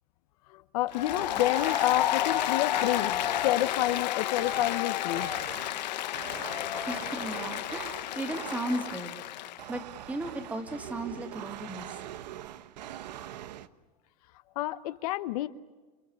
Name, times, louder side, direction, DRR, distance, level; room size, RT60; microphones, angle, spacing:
voice 1, 0.5-5.3 14.5-15.5, left 15 dB, 60° left, 12 dB, 1.0 m, -29 dB
Applause, 0.9-9.6, left 13 dB, 90° left, 1.3 m, -31 dB
sound 1, 1.1-9.2 9.6-13.7, right 12 dB, 85° right, 1.2 m, -43 dB
voice 2, 6.9-9.1 9.7-12.0, right 1 dB, 5° right, 6 dB, 2.3 m, -36 dB
29.0 x 26.5 x 7.1 m, 1.3 s
supercardioid pair, 160°, 21 cm